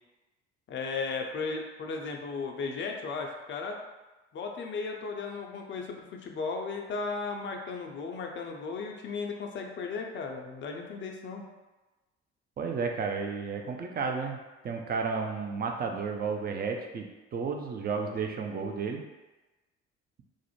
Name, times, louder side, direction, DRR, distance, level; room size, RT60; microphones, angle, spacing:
voice 1, 0.7-3.7 4.3-11.4, left 4 dB, 35° left, 2 dB, 0.5 m, -35 dB
voice 2, 12.6-19.0, right 5 dB, 30° right, 3 dB, 0.4 m, -32 dB
2.5 x 2.0 x 3.0 m, 1.1 s
hypercardioid pair, 50°, 34 cm